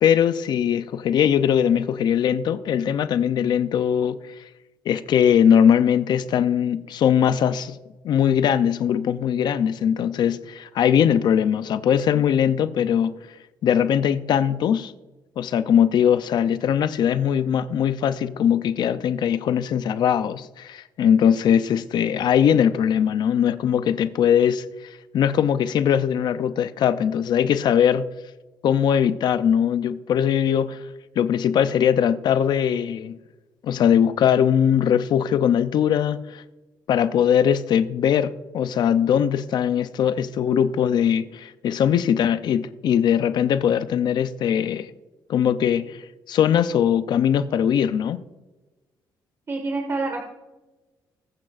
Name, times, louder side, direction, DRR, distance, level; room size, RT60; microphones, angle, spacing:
voice 1, 0.0-4.2 4.9-7.8 8.0-13.2 13.6-14.9 15.4-28.1 28.6-30.8 31.2-33.2 33.6-36.4 36.9-44.9 45.3-46.0 46.3-48.2, left 8 dB, 70° left, 0.5 m, -20 dB
voice 2, 49.5-50.2, right 3 dB, 35° right, 1.7 m, -26 dB
21.0 x 8.6 x 2.5 m
cardioid pair, 105°, 8 cm